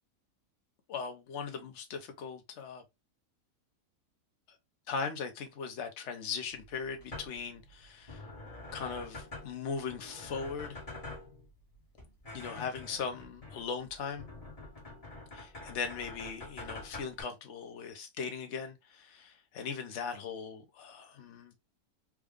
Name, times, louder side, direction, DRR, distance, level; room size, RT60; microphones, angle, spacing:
voice 1, 0.9-2.8 4.9-8.2 8.7-10.8 12.3-14.3 15.3-21.5, left 5 dB, 55° left, 1.0 m, -39 dB
sound 1, 6.5-17.2, left 2 dB, 25° left, 1.1 m, -47 dB
3.6 x 2.2 x 3.6 m
omnidirectional pair, 1.6 m